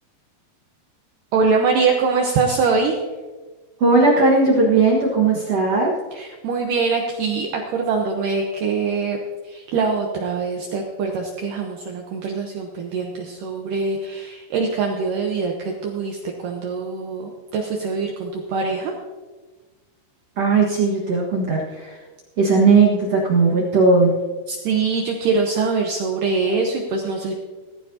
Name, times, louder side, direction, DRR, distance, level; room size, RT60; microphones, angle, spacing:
voice 1, 1.3-3.0 6.1-9.2 9.4-18.9 24.5-27.3, right 4 dB, 80° right, 1 dB, 1.9 m, -23 dB
voice 2, 3.8-5.9 20.4-22.0 22.4-24.1, right 3 dB, 65° right, -3 dB, 1.6 m, -17 dB
16.5 x 14.5 x 2.8 m, 1.3 s
omnidirectional pair, 5.2 m